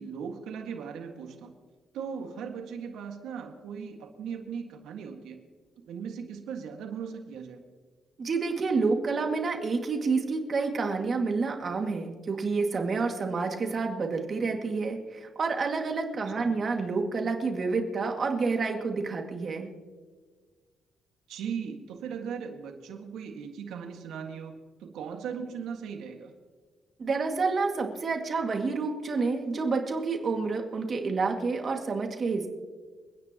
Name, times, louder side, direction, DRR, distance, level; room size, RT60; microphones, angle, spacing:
voice 1, 0.0-1.5 1.9-5.4 5.9-7.6 16.4-16.5 21.3-26.3, right 6 dB, 80° right, 3 dB, 1.8 m, -38 dB
voice 2, 8.2-19.7 27.0-32.5, right 4 dB, 45° right, 3 dB, 2.1 m, -29 dB
29.5 x 10.0 x 3.0 m, 1.5 s
cardioid pair, 90°, 0 cm